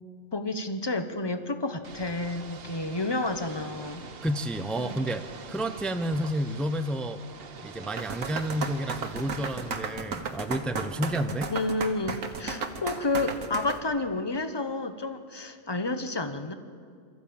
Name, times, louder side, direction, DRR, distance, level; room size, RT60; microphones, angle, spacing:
voice 1, 0.3-4.0 4.8-4.9 11.5-16.5, left 2 dB, 20° left, 9 dB, 0.9 m, -30 dB
Ocean / Boat Water vehicle, 1.8-9.7, right 5 dB, 50° right, 1.2 m, -44 dB
voice 2, 4.2-7.2 7.6-11.5, right 1 dB, ahead, 9 dB, 0.4 m, -30 dB
sound 1, 8.0-13.8, right 4 dB, 85° right, 1.7 m, -34 dB
23.5 x 14.0 x 8.7 m, 2.2 s
omnidirectional pair, 1.4 m